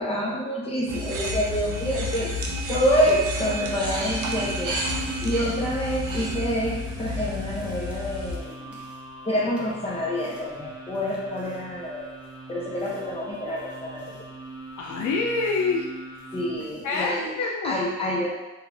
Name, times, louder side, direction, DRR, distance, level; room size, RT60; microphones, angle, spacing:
voice 1, 0.0-2.3 2.7-4.8 5.2-8.8 9.2-12.1 12.5-14.2 16.3-17.3 17.6-18.3, equal, 20° left, -4 dB, 1.2 m, -27 dB
sound 1, 0.9-17.2, left 1 dB, 5° right, 1.0 m, -48 dB
sound 2, 0.9-8.4, left 1 dB, 85° right, 0.8 m, -31 dB
sound 3, 2.2-16.5, right 1 dB, 50° right, 1.1 m, -41 dB
voice 2, 14.8-15.9 16.8-17.8, left 4 dB, 75° left, 0 dB, 0.6 m, -26 dB
4.4 x 2.6 x 3.4 m, 1.1 s
cardioid pair, 90°, 30 cm